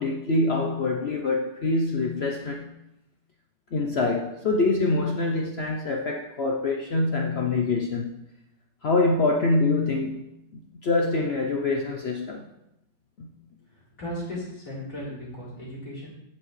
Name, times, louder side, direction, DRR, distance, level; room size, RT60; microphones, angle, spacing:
voice 1, 0.0-2.7 3.7-8.3 8.8-10.3 10.8-12.5 13.2-13.3, left 3 dB, 80° left, 1 dB, 0.5 m, -25 dB
voice 2, 13.7-16.1, equal, 45° left, -8 dB, 4.4 m, -36 dB
16.0 x 5.8 x 3.2 m, 0.84 s
omnidirectional pair, 2.1 m